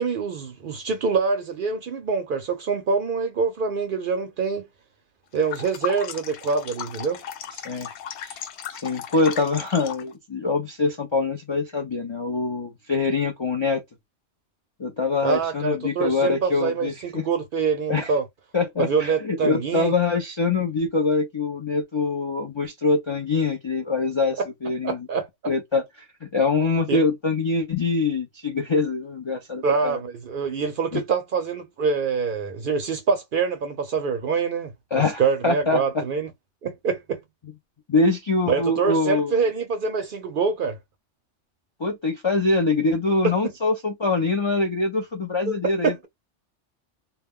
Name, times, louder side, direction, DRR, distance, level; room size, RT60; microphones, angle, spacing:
voice 1, 0.0-4.7 5.3-7.2 15.2-18.3 18.8-19.9 24.8-25.3 26.9-27.0 29.6-36.3 36.6-37.2 38.5-40.8 43.2-43.3 45.5-45.6 45.8-46.1, right 5 dB, 60° right, 0.6 m, -25 dB
sound 1, 5.3-10.1, left 9 dB, 70° left, 0.8 m, -36 dB
voice 2, 7.5-7.9 8.2-8.4 8.7-13.8 14.8-17.2 17.9-18.1 18.5-25.1 25.5-30.0 30.9-31.0 34.9-36.0 37.9-39.4 41.8-46.1, left 3 dB, 50° left, 0.3 m, -24 dB
2.2 x 2.2 x 3.4 m
omnidirectional pair, 1.2 m